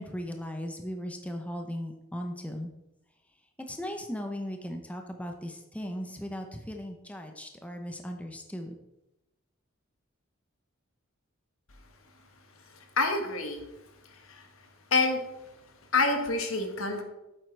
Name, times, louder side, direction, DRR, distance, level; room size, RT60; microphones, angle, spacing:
voice 1, 0.0-2.7 3.6-8.8, equal, 5° left, 4 dB, 0.7 m, -37 dB
voice 2, 13.0-13.6 14.1-14.4 14.9-15.2 15.9-17.0, left 3 dB, 80° left, 5 dB, 1.3 m, -27 dB
9.0 x 7.9 x 3.3 m, 0.92 s
head